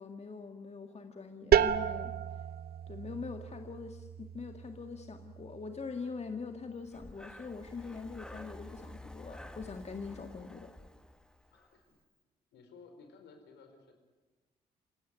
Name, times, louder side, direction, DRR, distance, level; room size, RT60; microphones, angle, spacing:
voice 1, 0.0-2.1 2.9-10.7, left 4 dB, 35° left, 5 dB, 2.0 m, -43 dB
sound 1, 1.5-7.0, right 9 dB, 55° right, 0.8 m, -33 dB
Breathing, 6.8-11.8, left 1 dB, 5° left, 1.8 m, -50 dB
voice 2, 11.5-12.0 12.5-13.9, left 4 dB, 65° left, 6 dB, 4.4 m, -56 dB
27.5 x 17.0 x 9.6 m, 1.3 s
hypercardioid pair, 40°, 19 cm